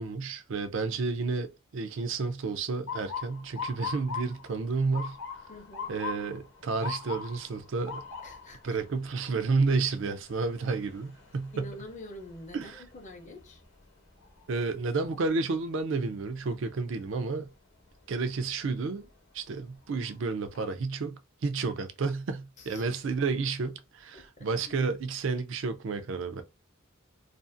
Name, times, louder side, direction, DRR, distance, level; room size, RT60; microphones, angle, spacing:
voice 1, 0.0-5.2 5.9-8.0 8.6-11.7 12.5-12.8 14.5-17.5 18.1-19.1 19.3-26.4, right 4 dB, 65° right, 0.4 m, -31 dB
Motor vehicle (road) / Siren, 2.9-14.8 15.2-15.7 16.4-16.7 18.6-18.9 19.4-19.5 19.9-20.6, left 6 dB, 60° left, 0.8 m, -42 dB
voice 2, 5.5-5.9 8.2-8.8 11.5-13.6 22.6-22.8 24.1-24.8, left 1 dB, 35° left, 0.5 m, -46 dB
2.5 x 2.4 x 2.5 m
head